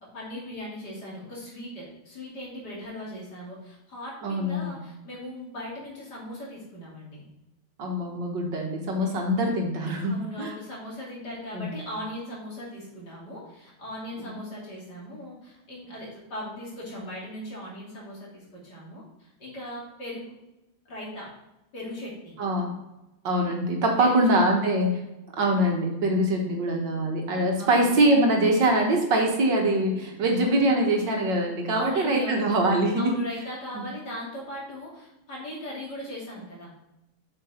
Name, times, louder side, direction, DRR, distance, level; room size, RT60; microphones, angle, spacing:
voice 1, 0.0-7.2 9.0-9.2 10.1-20.3 20.8-21.3 21.7-22.3 24.0-24.2 27.6-27.9 31.7-32.5 33.0-36.7, left 1 dB, 50° left, -5 dB, 3.3 m, -38 dB
voice 2, 4.2-4.7 7.8-10.5 11.5-11.7 22.4-22.7 23.2-25.0 25.4-33.1 33.8-33.9, right 1 dB, 60° right, 1 dB, 1.8 m, -23 dB
7.5 x 6.5 x 4.3 m, 0.94 s
omnidirectional pair, 2.3 m